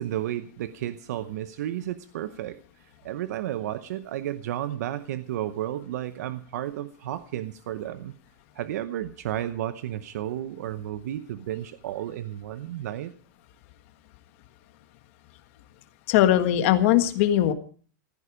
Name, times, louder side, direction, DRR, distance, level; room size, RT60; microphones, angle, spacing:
voice 1, 0.0-2.6 3.0-8.1 8.5-13.1, right 12 dB, 60° right, 12 dB, 0.9 m, -32 dB
voice 2, 16.1-17.5, left 12 dB, 40° left, 9 dB, 1.6 m, -20 dB
16.5 x 14.5 x 5.0 m, 0.42 s
supercardioid pair, 175°, 10 cm